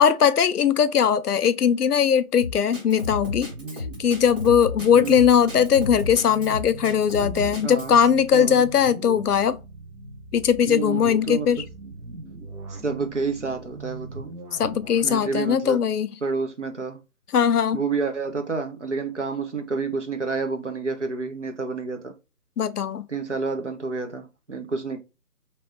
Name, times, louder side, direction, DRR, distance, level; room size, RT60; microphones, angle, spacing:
voice 1, 0.0-3.5 4.0-9.6 10.3-11.6 14.5-16.1 17.3-17.8 22.6-23.0, left 8 dB, 90° left, 0.6 m, -20 dB
Drum kit, 2.4-7.9, left 3 dB, 35° right, 1.7 m, -33 dB
sound 1, 3.0-15.3, right 3 dB, 70° right, 1.1 m, -40 dB
voice 2, 7.6-8.0 8.3-8.7 10.6-11.5 12.7-14.3 15.0-15.8 16.2-17.0 17.7-22.1 23.1-25.0, right 4 dB, 50° right, 0.8 m, -29 dB
3.1 x 2.9 x 3.1 m
figure-of-eight pair, 175°, 45 cm